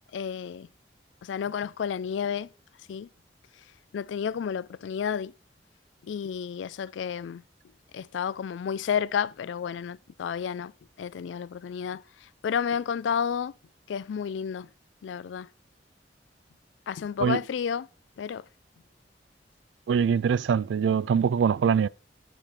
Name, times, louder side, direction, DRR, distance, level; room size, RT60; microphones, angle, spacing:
voice 1, 0.1-0.7 1.2-2.5 2.9-3.1 3.9-5.3 6.0-7.4 7.9-10.7 11.0-13.5 13.9-14.7 15.0-15.5 16.9-17.9 18.2-18.4, left 7 dB, 90° left, 0.3 m, -31 dB
voice 2, 19.9-21.9, right 7 dB, 85° right, 0.3 m, -23 dB
7.3 x 7.0 x 4.3 m
head